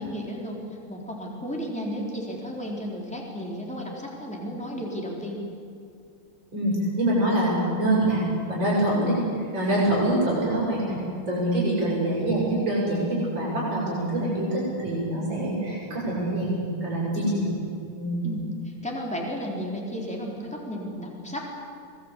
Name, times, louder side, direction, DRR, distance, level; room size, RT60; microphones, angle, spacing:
voice 1, 0.0-5.4 11.8-12.0 18.2-21.6, equal, 5° left, -2 dB, 4.2 m, -33 dB
voice 2, 6.5-9.2 9.5-11.0 11.3-17.5 17.9-18.3, right 1 dB, 60° right, -6 dB, 8.4 m, -25 dB
26.0 x 19.0 x 8.5 m, 2.4 s
omnidirectional pair, 2.3 m